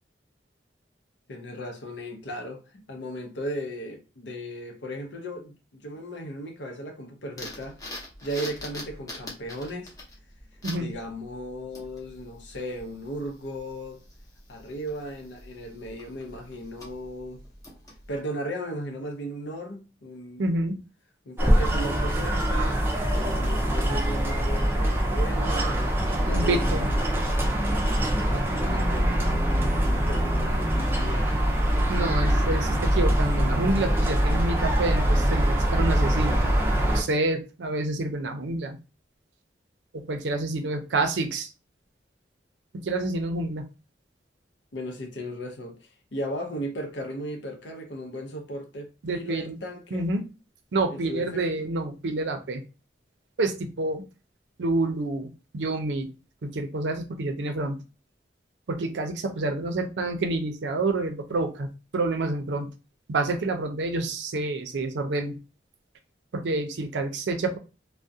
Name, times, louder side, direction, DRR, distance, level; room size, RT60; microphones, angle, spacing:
voice 1, 1.3-7.9 8.2-9.9 10.8-14.0 14.5-17.4 18.1-20.5 21.3-22.8 23.2-27.0 27.8-31.7 44.7-50.1 50.9-51.7, equal, 80° left, 0.6 m, -36 dB
sound 1, 7.4-18.2, left 1 dB, 20° left, 0.7 m, -44 dB
voice 2, 20.4-20.8 26.3-26.9 31.9-36.4 36.9-38.8 39.9-41.5 42.7-43.6 49.0-49.6 49.9-50.2 50.7-52.6 53.4-54.0 54.6-56.1 56.4-57.8 58.7-62.7 63.1-65.4 66.3-67.6, right 2 dB, 80° right, 0.5 m, -28 dB
sound 2, 21.4-37.0, equal, 15° right, 0.4 m, -23 dB
2.3 x 2.1 x 2.6 m
head